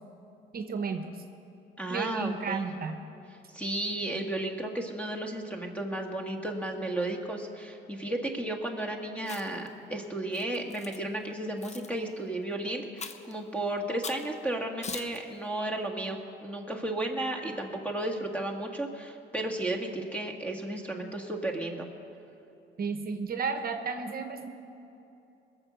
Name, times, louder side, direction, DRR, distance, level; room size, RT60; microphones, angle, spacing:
voice 1, 0.5-1.2 1.9-3.0 22.8-24.5, right 5 dB, 50° right, 7 dB, 0.9 m, -33 dB
voice 2, 1.8-2.7 3.5-21.9, right 1 dB, 5° left, 2 dB, 1.7 m, -33 dB
Chewing mastication, 9.2-9.7 10.3-11.0 11.6-11.9 13.0-13.3 14.0-14.3 14.8-15.2, left 4 dB, 35° left, 0.9 m, -40 dB
21.0 x 7.3 x 6.2 m, 2.8 s
cardioid pair, 90°, 20 cm